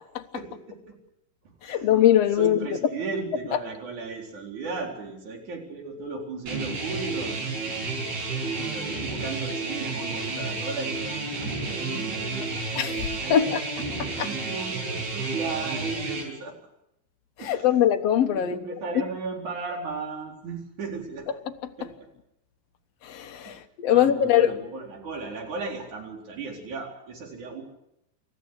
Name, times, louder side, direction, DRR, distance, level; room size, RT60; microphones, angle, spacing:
voice 1, 0.3-0.9 1.4-1.9 2.4-7.4 8.5-16.6 17.4-17.7 18.3-21.3 21.8-21.9 23.4-23.6 23.9-27.6, right 4 dB, 50° right, 5.5 m, -36 dB
voice 2, 1.6-2.7 12.8-13.6 14.0-14.3 17.4-18.8 23.0-24.5, left 10 dB, 60° left, 1.8 m, -22 dB
sound 1, 6.5-16.2, right 3 dB, 80° right, 7.1 m, -31 dB
28.0 x 14.0 x 8.2 m
omnidirectional pair, 4.5 m